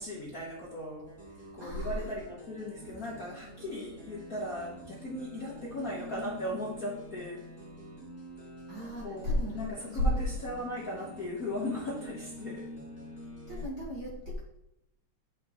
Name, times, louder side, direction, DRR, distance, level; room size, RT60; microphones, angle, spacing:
voice 1, 0.0-7.5 9.0-12.7, left 1 dB, 45° left, -5 dB, 1.2 m, -38 dB
sound 1, 1.1-13.7, equal, 10° right, 1.1 m, -47 dB
voice 2, 1.6-2.1 8.7-9.6 9.9-10.1 13.5-14.4, left 1 dB, 45° right, -4 dB, 1.5 m, -32 dB
9.3 x 6.0 x 3.0 m, 0.83 s
omnidirectional pair, 3.4 m